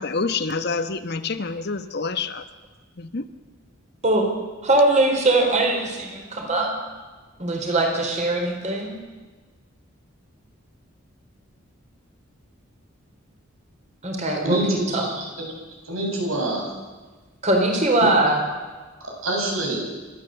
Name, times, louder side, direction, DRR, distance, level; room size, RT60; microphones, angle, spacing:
voice 1, 0.0-2.4 3.1-3.2, left 4 dB, 50° left, 10 dB, 1.1 m, -27 dB
voice 2, 4.6-6.7 7.4-9.0 14.0-15.0 17.4-18.4, right 2 dB, 35° right, 2 dB, 4.4 m, -21 dB
voice 3, 14.4-15.2 15.8-16.7 19.2-19.8, right 1 dB, 85° right, -1 dB, 7.8 m, -25 dB
29.5 x 13.5 x 7.9 m, 1.3 s
head